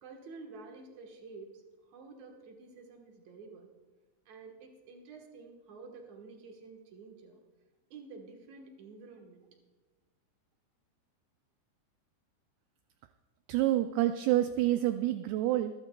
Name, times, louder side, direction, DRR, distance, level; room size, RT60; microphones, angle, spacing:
voice 1, 0.0-3.7 4.3-7.4 7.9-9.5, right 4 dB, 60° right, 2 dB, 2.0 m, -50 dB
voice 2, 13.5-15.7, right 14 dB, 85° right, 9 dB, 2.3 m, -28 dB
26.5 x 12.0 x 2.3 m, 1.3 s
omnidirectional pair, 4.9 m